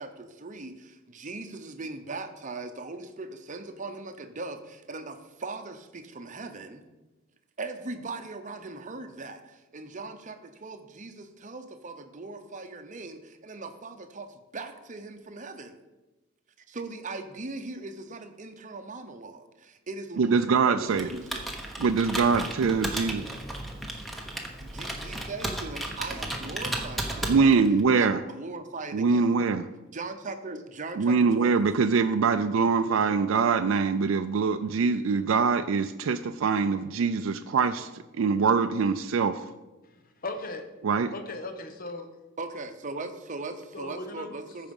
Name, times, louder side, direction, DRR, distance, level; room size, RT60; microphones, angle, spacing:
voice 1, 0.0-6.8 7.6-15.8 16.7-21.5 24.6-27.6 27.9-29.3 29.9-31.6 42.4-44.7, right 3 dB, 35° right, 8 dB, 0.8 m, -39 dB
voice 2, 20.2-21.1 21.8-23.3 27.3-28.2 28.9-29.7 31.0-39.4 40.8-41.1, right 5 dB, 65° right, 8 dB, 0.4 m, -24 dB
Computer keyboard, 20.9-27.8, right 1 dB, ahead, 1.0 m, -34 dB
voice 3, 39.8-40.6 41.1-42.1 43.7-44.3, left 2 dB, 45° left, 6 dB, 0.9 m, -37 dB
14.5 x 4.9 x 5.3 m, 1.1 s
head